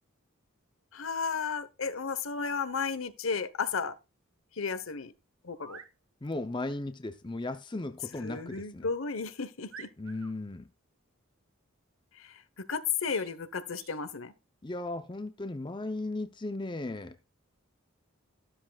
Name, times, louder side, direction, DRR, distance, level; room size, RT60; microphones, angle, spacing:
voice 1, 0.9-3.9 4.6-5.1 5.4-5.8 8.2-9.9 12.2-12.3 12.7-14.3, left 5 dB, 70° left, 1.1 m, -33 dB
sound 1, 5.5-5.9 8.5-8.7 9.2-9.3 9.7-10.3 13.1-13.4 13.8-14.0, right 6 dB, 65° right, 1.4 m, -50 dB
voice 2, 6.2-8.9 10.0-10.7 14.6-17.2, left 2 dB, 20° left, 0.6 m, -36 dB
13.0 x 12.5 x 2.4 m
head